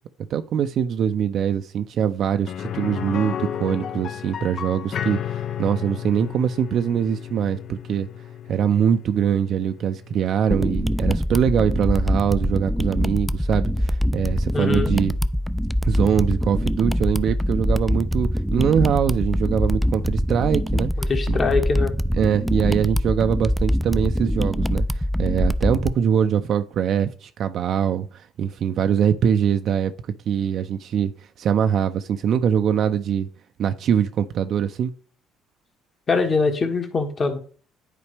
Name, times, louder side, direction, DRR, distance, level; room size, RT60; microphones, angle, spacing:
voice 1, 0.3-8.1 8.5-15.2 15.8-20.9 21.3-21.4 22.1-29.9 30.3-33.3 33.6-34.9, right 8 dB, 60° right, 0.4 m, -23 dB
sound 1, 2.5-12.2 12.6-12.7 15.1-15.2, left 9 dB, 60° left, 0.6 m, -33 dB
sound 2, 10.5-25.9, equal, ahead, 0.4 m, -23 dB
voice 2, 14.5-14.9 21.0-22.0 36.1-37.4, left 4 dB, 40° left, 1.5 m, -23 dB
9.9 x 4.2 x 3.3 m
supercardioid pair, 65°, 0 cm